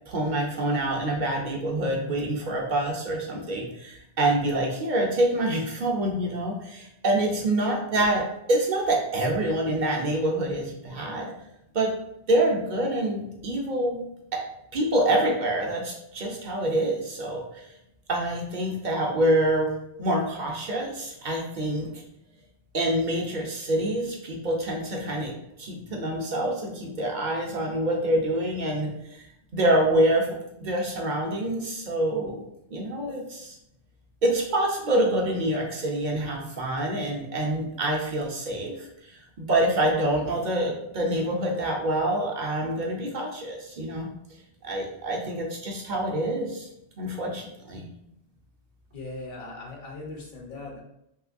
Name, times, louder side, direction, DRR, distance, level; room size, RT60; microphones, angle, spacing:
voice 1, 0.1-11.3 11.7-11.9 12.3-14.0 14.3-14.4 14.7-17.7 18.1-19.7 20.0-22.0 22.7-29.3 29.5-30.3 30.6-32.4 32.7-33.5 34.2-44.1 44.6-46.7 47.0-47.4 47.7-47.8, right 1 dB, 55° right, -1 dB, 0.6 m, -26 dB
voice 2, 48.9-50.8, left 2 dB, 50° left, -1 dB, 0.8 m, -39 dB
3.1 x 2.8 x 2.4 m, 0.81 s
omnidirectional pair, 1.1 m